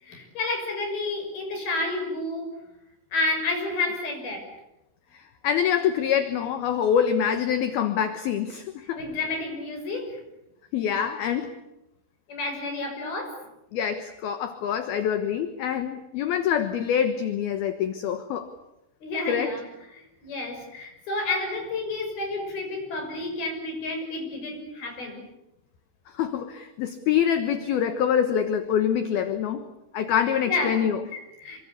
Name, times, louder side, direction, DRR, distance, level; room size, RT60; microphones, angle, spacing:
voice 1, 0.0-2.5 3.1-4.4 8.9-10.2 12.3-13.4 19.0-19.6 19.9-25.2 30.5-30.8 31.1-31.6, left 2 dB, 50° left, 3 dB, 8.2 m, -30 dB
voice 2, 5.1-9.0 10.7-11.6 13.7-18.5 19.3-19.5 26.1-29.7 29.9-31.0, left 8 dB, 65° left, 9 dB, 2.7 m, -25 dB
27.5 x 24.5 x 8.5 m, 0.90 s
omnidirectional pair, 5.5 m